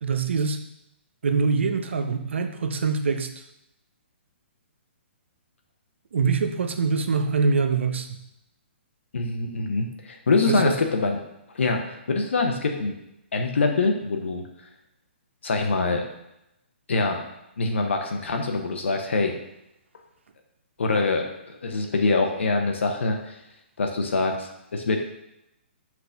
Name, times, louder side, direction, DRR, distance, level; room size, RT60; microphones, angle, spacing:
voice 1, 0.0-0.6 1.2-3.3 6.1-8.2 10.5-10.7, right 4 dB, 75° right, 7 dB, 0.5 m, -24 dB
voice 2, 9.1-11.2 11.5-13.0 13.3-14.4 15.4-16.0 16.9-17.2 17.6-19.3 20.8-23.4 23.8-25.1, left 3 dB, 80° left, 3 dB, 0.8 m, -24 dB
5.9 x 2.5 x 3.4 m, 0.84 s
hypercardioid pair, 140°, 6 cm